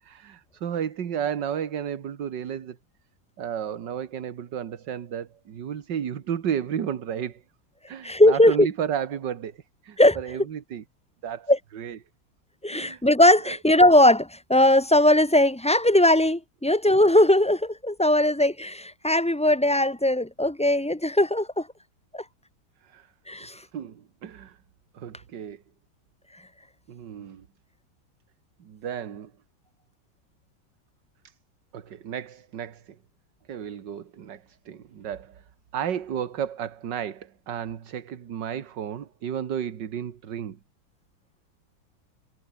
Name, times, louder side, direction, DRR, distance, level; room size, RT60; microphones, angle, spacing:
voice 1, 0.0-2.8 3.4-7.4 7.9-10.8 11.2-12.0 12.7-13.0 13.5-13.6 22.8-23.1 23.7-24.6 24.9-25.6 26.9-27.5 28.6-29.3 31.2-31.3 31.7-33.0 33.5-35.4 35.7-40.6, right 8 dB, 65° right, 2.1 m, -33 dB
voice 2, 8.0-8.7 10.0-10.2 11.5-11.6 12.6-21.7 22.1-22.2 23.3-23.6, left 1 dB, 10° left, 0.3 m, -19 dB
omnidirectional pair, 2.1 m